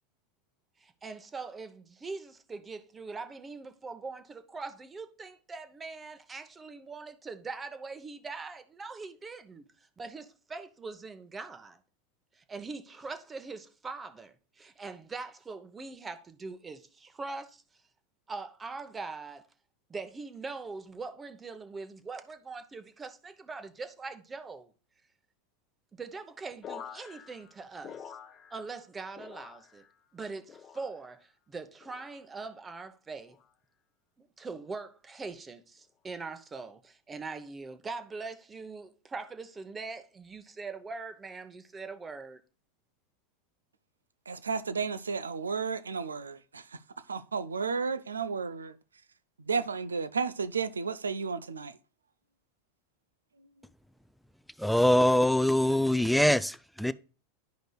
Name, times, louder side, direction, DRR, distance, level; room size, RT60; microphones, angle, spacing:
voice 1, 0.8-9.6 10.0-11.8 12.3-17.6 18.3-19.5 19.9-24.7 25.9-28.1 28.5-29.8 30.1-33.4 34.2-42.4, right 4 dB, 20° right, 0.9 m, -42 dB
sound 1, 26.6-28.9 29.1-30.0 30.5-31.2 31.8-32.3 33.1-33.5 34.4-34.7, left 8 dB, 35° left, 0.8 m, -48 dB
voice 2, 44.3-46.8 47.1-48.8 49.4-51.8, right 5 dB, 90° right, 0.4 m, -33 dB
voice 3, 54.6-56.9, left 1 dB, ahead, 0.4 m, -23 dB
11.5 x 5.1 x 2.3 m
hypercardioid pair, 90°, 0 cm